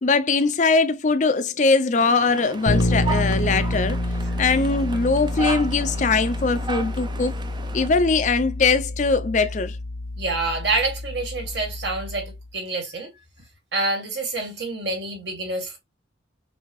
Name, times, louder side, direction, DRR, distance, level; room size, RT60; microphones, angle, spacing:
voice 1, 0.0-4.0 4.4-7.3 7.7-9.8, left 4 dB, 40° left, 0.4 m, -21 dB
sound 1, 1.9-7.9, right 3 dB, 25° right, 0.5 m, -35 dB
Bass guitar, 2.7-12.5, left 1 dB, 60° left, 0.9 m, -28 dB
voice 2, 10.2-13.1 13.7-15.8, right 3 dB, 70° right, 2.2 m, -27 dB
6.2 x 2.6 x 3.1 m
head